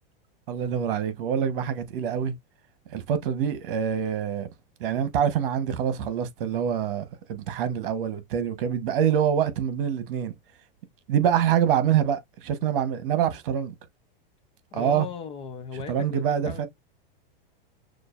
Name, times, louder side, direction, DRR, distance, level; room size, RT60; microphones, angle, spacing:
voice 1, 0.5-2.3 2.9-4.5 4.8-10.3 11.1-13.7 14.7-15.1 15.9-16.7, right 8 dB, 60° right, 1.2 m, -25 dB
voice 2, 14.7-16.7, left 6 dB, 20° left, 0.5 m, -37 dB
6.4 x 2.6 x 2.5 m
supercardioid pair, 150°, 30 cm